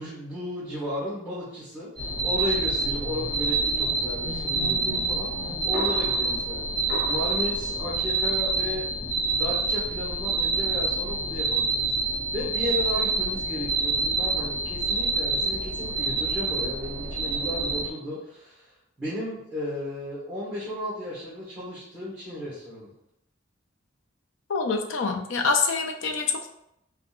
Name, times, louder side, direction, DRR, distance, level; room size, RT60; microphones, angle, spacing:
voice 1, 0.0-6.8 7.1-8.9 9.3-11.9 12.3-18.7 19.0-22.9, left 1 dB, 5° right, -10 dB, 1.0 m, -34 dB
sound 1, 2.0-17.9, right 3 dB, 55° right, 0.6 m, -27 dB
voice 2, 24.5-26.5, left 4 dB, 80° left, 5 dB, 0.4 m, -26 dB
3.6 x 2.2 x 2.4 m, 0.77 s
head